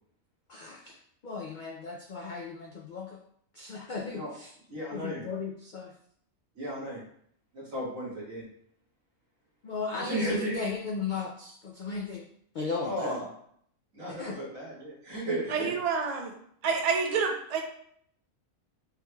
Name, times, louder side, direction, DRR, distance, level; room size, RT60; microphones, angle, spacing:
voice 1, 0.5-1.0 1.2-3.2 3.5-4.5 4.9-5.9 9.6-12.2 12.5-13.3 14.1-14.4, left 4 dB, 80° left, 1 dB, 0.4 m, -36 dB
voice 2, 4.7-5.2 6.6-7.0 7.5-8.4 9.9-10.5 12.8-13.3 13.9-15.7, right 1 dB, 70° right, -7 dB, 2.2 m, -34 dB
voice 3, 15.5-16.3 16.6-17.6, right 5 dB, 50° right, 3 dB, 0.5 m, -28 dB
6.7 x 3.1 x 2.3 m, 0.66 s
omnidirectional pair, 1.4 m